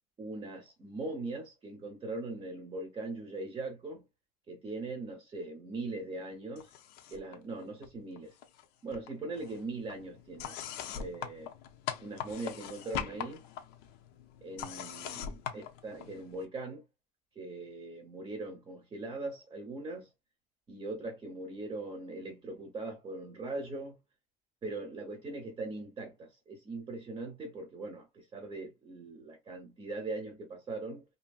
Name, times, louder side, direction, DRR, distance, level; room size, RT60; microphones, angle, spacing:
voice 1, 0.2-4.0 4.5-6.7 7.1-8.3 8.8-10.6 10.9-11.5 12.0-13.4 14.4-16.8 17.4-20.1 20.7-24.0 24.6-31.0, right 2 dB, 25° right, 0.7 m, -40 dB
sound 1, 6.6-7.4 7.6-8.6 8.9-16.5, left 9 dB, 70° left, 0.6 m, -42 dB
2.7 x 2.7 x 2.3 m
cardioid pair, 145°, 17 cm